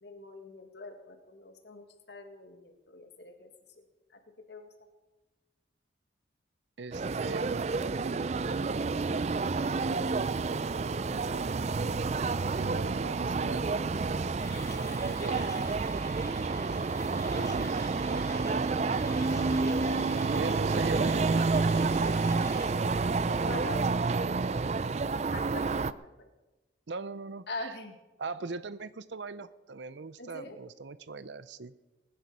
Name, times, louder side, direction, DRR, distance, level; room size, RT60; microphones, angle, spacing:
voice 1, 0.0-3.5 3.8-3.9 4.5-4.7 11.1-11.3 23.2-23.9 25.3-26.1 27.5-28.3 30.2-30.6, left 2 dB, 70° left, 5 dB, 1.9 m, -43 dB
voice 2, 6.8-11.6 12.5-16.0 17.2-19.3 20.2-22.1 23.4-23.5 26.9-27.8 28.2-31.7, right 4 dB, 80° right, 15 dB, 0.6 m, -42 dB
sound 1, 6.9-25.9, right 4 dB, 35° right, 0.4 m, -29 dB
sound 2, 9.3-21.3, equal, 40° left, 1.8 m, -52 dB
Mechanisms, 14.4-22.7, left 3 dB, 20° left, 1.5 m, -48 dB
20.0 x 10.5 x 5.4 m, 1.1 s
head